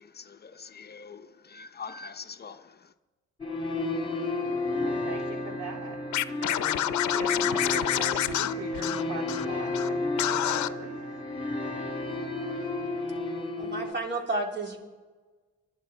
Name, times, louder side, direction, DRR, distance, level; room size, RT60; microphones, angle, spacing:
voice 1, 0.0-2.8, left 5 dB, 35° left, 0.7 m, -44 dB
sound 1, 3.4-13.9, left 2 dB, 15° left, 2.7 m, -32 dB
voice 2, 4.7-6.0 6.4-11.1, right 4 dB, 85° right, 3.0 m, -41 dB
Scratching (performance technique), 6.1-9.4 9.7-9.9 10.2-10.7, left 13 dB, 70° left, 0.6 m, -28 dB
voice 3, 13.6-14.8, right 2 dB, 35° right, 3.7 m, -31 dB
25.5 x 11.5 x 4.5 m
cardioid pair, 90°, 30 cm